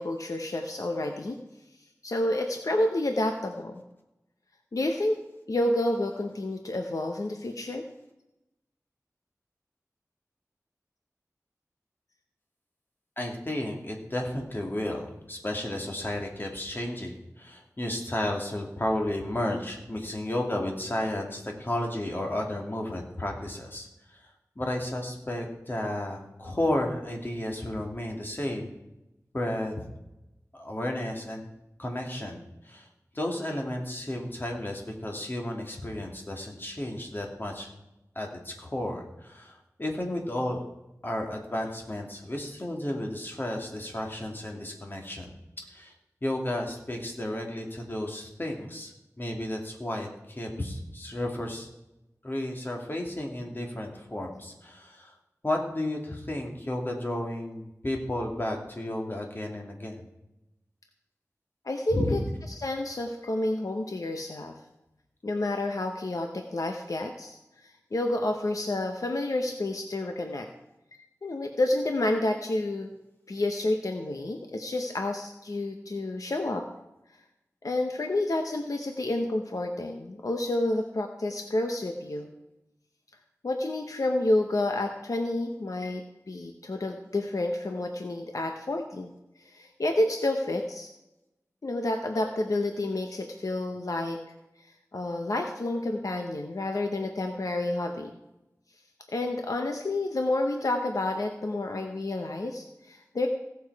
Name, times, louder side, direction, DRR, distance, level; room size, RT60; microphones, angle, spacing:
voice 1, 0.0-1.4 2.0-3.8 4.7-5.2 5.5-7.9 61.6-62.2 62.6-64.6 65.2-70.5 71.0-72.9 73.3-76.6 77.6-82.3 83.4-89.1 89.4-90.9 91.6-94.2 94.9-98.1 99.1-103.3, left 2 dB, 75° left, 4 dB, 0.9 m, -29 dB
voice 2, 13.2-28.7 29.3-29.8 30.5-31.4 31.8-32.9 33.1-37.7 38.2-40.6 41.0-45.3 45.7-45.9 46.2-51.7 52.2-55.1 55.4-60.1 61.9-62.2, left 1 dB, 35° left, 1 dB, 2.4 m, -33 dB
16.5 x 7.1 x 4.7 m, 0.93 s
wide cardioid pair, 70°, 6 cm